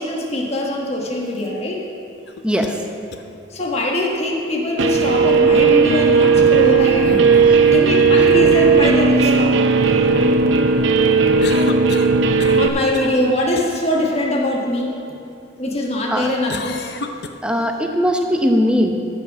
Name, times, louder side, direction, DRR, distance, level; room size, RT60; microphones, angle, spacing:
voice 1, 0.0-1.8 3.5-7.2 7.7-9.6 12.6-15.0 15.6-16.9, left 1 dB, 35° left, -1 dB, 1.3 m, -22 dB
sound 1, 2.3-2.8 3.1-3.2 5.0-5.3 7.0-7.9 11.4-12.7 12.9-13.2 13.6-13.7 16.5-17.3, left 3 dB, 60° left, 0.6 m, -31 dB
voice 2, 2.4-2.8 7.5-7.7 8.2-8.3 16.1-16.3 17.4-18.9, equal, 5° right, 3 dB, 0.8 m, -19 dB
Guitar, 4.8-12.7, right 4 dB, 80° right, 0.6 m, -15 dB
13.5 x 6.1 x 6.1 m, 2.6 s
head